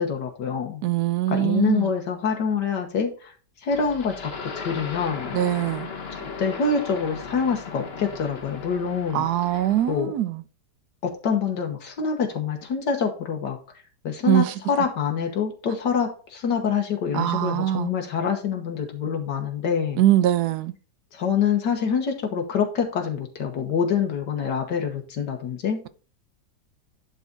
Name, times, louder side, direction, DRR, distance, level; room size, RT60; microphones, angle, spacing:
voice 1, 0.0-0.8 1.3-3.3 3.6-5.4 6.1-9.3 9.9-10.1 11.0-13.6 14.0-20.0 21.1-25.8, left 6 dB, 75° left, 1.8 m, -26 dB
voice 2, 0.8-1.9 5.3-5.9 9.1-10.4 14.3-14.5 17.1-17.9 20.0-20.7, right 13 dB, 70° right, 1.1 m, -22 dB
sound 1, 3.7-10.0, left 4 dB, 40° left, 1.2 m, -37 dB
10.5 x 4.2 x 3.9 m
omnidirectional pair, 1.9 m